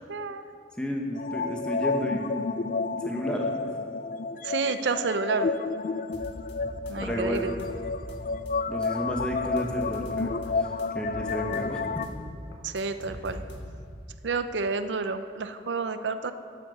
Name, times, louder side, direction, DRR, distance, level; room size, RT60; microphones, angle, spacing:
voice 1, 0.1-0.4 4.4-5.5 6.9-7.5 12.6-13.4 14.2-16.3, right 4 dB, 90° right, 10 dB, 0.6 m, -29 dB
voice 2, 0.8-2.3 2.9-3.5 7.0-7.6 8.7-10.7 10.9-11.8, equal, 5° left, 0 dB, 1.2 m, -32 dB
sound 1, 1.1-12.1, left 4 dB, 50° left, 0.4 m, -31 dB
sound 2, 6.1-8.5 8.8-10.5 10.8-14.0, equal, 85° left, 1.6 m, -41 dB
11.0 x 8.6 x 6.6 m, 2.4 s
head